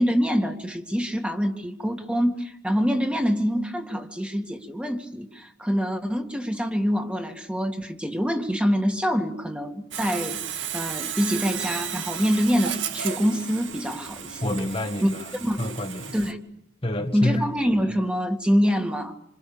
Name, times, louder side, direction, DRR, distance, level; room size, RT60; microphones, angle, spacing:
voice 1, 0.0-10.4 10.7-14.5 15.0-15.1 15.4-15.7 16.1-16.4 17.1-19.2, equal, 5° right, 2.3 m, -25 dB
Sawing, 9.9-16.3, right 8 dB, 85° right, 2.2 m, -33 dB
voice 2, 14.4-16.2 16.8-17.4, left 1 dB, 30° left, 1.7 m, -28 dB
27.5 x 27.5 x 7.1 m
head